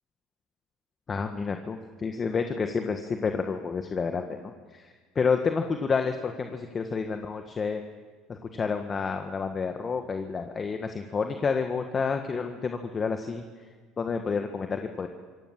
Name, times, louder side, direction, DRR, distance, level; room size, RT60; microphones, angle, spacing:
voice 1, 1.1-7.8 8.3-13.4 14.0-15.1, left 5 dB, 35° left, 5 dB, 1.6 m, -29 dB
26.0 x 16.5 x 7.5 m, 1.5 s
supercardioid pair, 85°, 0 cm